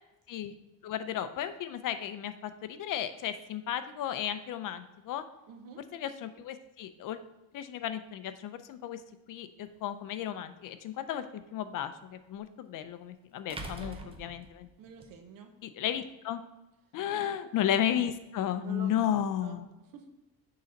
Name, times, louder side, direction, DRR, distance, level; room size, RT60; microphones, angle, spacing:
voice 1, 0.8-5.2 5.9-7.2 7.5-9.0 9.3-11.2 11.5-14.7 15.6-16.4 16.9-19.7, left 10 dB, 60° left, 10 dB, 0.5 m, -34 dB
voice 2, 5.5-5.8 13.5-14.1 14.8-15.5 17.1-17.5 18.6-19.6 19.9-20.1, right 6 dB, 65° right, 6 dB, 0.9 m, -48 dB
sound 1, 9.7-9.8 12.3-12.4 13.5-15.1, right 1 dB, 15° right, 0.5 m, -43 dB
6.7 x 4.0 x 5.2 m, 1.0 s
cardioid pair, 175°, 37 cm